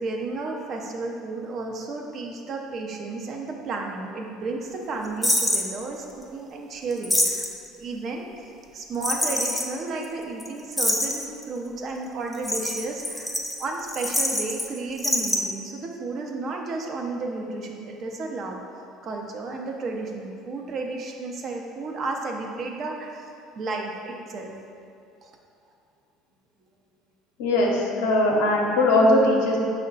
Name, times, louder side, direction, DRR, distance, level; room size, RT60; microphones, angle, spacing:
voice 1, 0.0-7.4 7.8-13.3 13.6-18.6 19.0-23.3 23.6-24.5 25.2-25.3, right 3 dB, 50° right, 1 dB, 0.5 m, -32 dB
sound 1, 5.2-5.7 6.9-7.7 9.0-9.7 10.0-10.1 10.4-10.5 10.7-11.4 12.3-14.7 14.9-15.4, left 1 dB, 5° left, 0.5 m, -25 dB
voice 2, 27.4-29.6, left 1 dB, 80° left, -1 dB, 0.6 m, -20 dB
5.3 x 2.1 x 3.9 m, 2.5 s
supercardioid pair, 80°, 0 cm